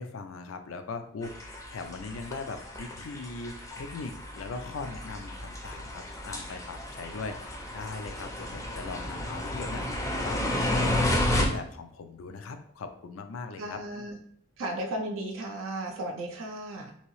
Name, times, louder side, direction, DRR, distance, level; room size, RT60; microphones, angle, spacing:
voice 1, 0.0-13.8, left 4 dB, 75° left, 8 dB, 0.4 m, -40 dB
sound 1, 1.2-11.5, left 1 dB, 15° left, 0.5 m, -32 dB
voice 2, 13.6-14.2 14.6-16.9, right 1 dB, 70° right, 1 dB, 0.4 m, -35 dB
2.9 x 2.7 x 3.0 m, 0.66 s
head